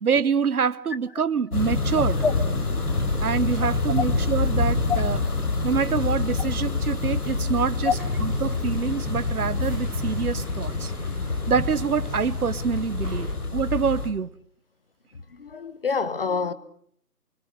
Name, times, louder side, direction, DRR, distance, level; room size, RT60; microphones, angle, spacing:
voice 1, 0.0-2.2 3.2-5.2 5.6-7.9 8.2-10.9 11.5-14.3, right 6 dB, 65° right, 1.1 m, -26 dB
sound 1, 1.5-14.1, left 3 dB, 65° left, 4.5 m, -26 dB
sound 2, 1.9-13.3, equal, 5° left, 2.9 m, -45 dB
voice 2, 15.1-16.5, left 5 dB, 35° left, 1.1 m, -26 dB
25.0 x 24.5 x 6.6 m
figure-of-eight pair, 165°, 48 cm